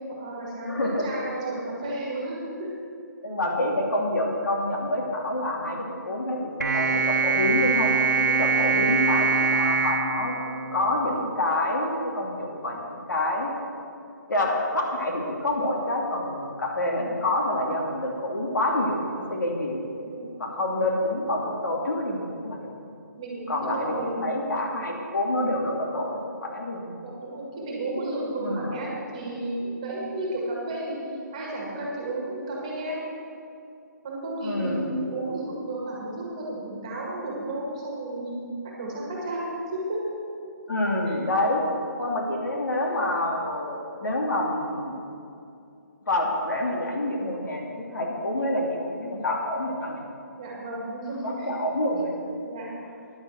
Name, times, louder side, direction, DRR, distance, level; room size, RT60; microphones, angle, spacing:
voice 1, 0.1-2.7 3.4-3.5 8.4-8.9 20.0-20.2 23.2-24.4 27.0-31.0 31.3-33.1 34.0-38.4 38.8-40.2 41.1-41.6 50.4-51.5 52.5-52.7, right 1 dB, 20° right, -3 dB, 1.8 m, -33 dB
voice 2, 0.6-1.1 3.2-5.8 6.0-7.9 8.3-10.3 10.7-13.5 14.3-19.8 20.4-22.7 23.5-26.1 26.4-27.0 28.4-28.8 34.4-34.9 40.7-41.6 42.0-45.0 46.1-50.0 51.2-52.1, left 1 dB, 80° left, -1 dB, 2.9 m, -27 dB
sound 1, 6.6-11.1, right 5 dB, 75° right, 1.1 m, -23 dB
10.5 x 7.4 x 7.8 m, 2.6 s
hypercardioid pair, 180°, 10 cm